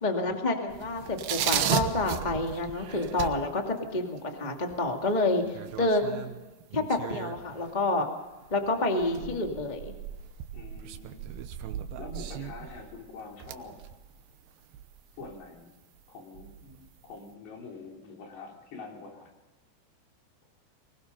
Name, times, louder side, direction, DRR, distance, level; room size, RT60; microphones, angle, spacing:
voice 1, 0.0-6.3 6.7-8.0 8.5-9.9, left 2 dB, 20° left, 3 dB, 1.2 m, -28 dB
sound 1, 0.7-4.2 4.7-7.8 8.3-15.6 16.0-16.1 16.3-17.1, right 10 dB, 70° right, 2.6 m, -36 dB
voice 2, 10.5-11.4 12.0-13.8 15.1-15.8 16.1-19.3, left 4 dB, 70° left, 1 dB, 5.5 m, -45 dB
24.5 x 21.0 x 5.5 m, 1.1 s
omnidirectional pair, 5.0 m